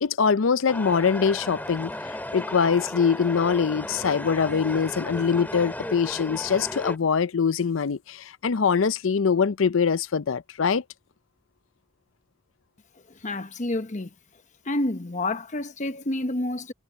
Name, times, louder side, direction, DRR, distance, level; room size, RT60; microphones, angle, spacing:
voice 1, 0.0-10.8, left 6 dB, 80° left, 0.6 m, -23 dB
sound 1, 0.7-7.0, left 1 dB, 10° left, 2.4 m, -35 dB
voice 2, 13.0-14.1 14.6-16.7, left 2 dB, 40° left, 1.1 m, -29 dB
head